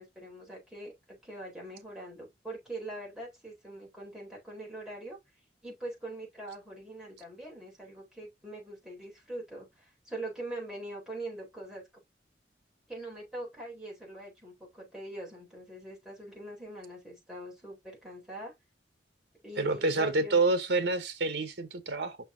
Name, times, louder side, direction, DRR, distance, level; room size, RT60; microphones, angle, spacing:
voice 1, 0.0-5.2 5.6-11.8 12.9-18.5 19.4-20.4, right 1 dB, 5° right, 4.1 m, -43 dB
voice 2, 19.6-22.2, right 3 dB, 70° right, 1.0 m, -28 dB
7.0 x 6.0 x 2.7 m
head